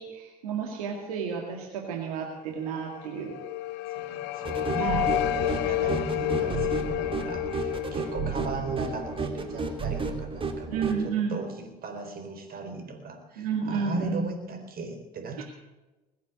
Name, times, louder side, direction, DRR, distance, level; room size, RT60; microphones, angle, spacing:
voice 1, 0.0-3.4 4.8-5.1 10.7-11.4 13.4-14.3 15.4-15.5, right 6 dB, 85° right, 1 dB, 2.2 m, -31 dB
sound 1, 2.9-10.0, left 16 dB, 70° left, 0.9 m, -31 dB
voice 2, 3.9-15.4, right 3 dB, 55° right, 6 dB, 4.2 m, -37 dB
sound 2, 4.4-11.0, right 4 dB, 30° right, 3.0 m, -32 dB
21.0 x 8.3 x 8.2 m, 1.1 s
hypercardioid pair, 60°, 18 cm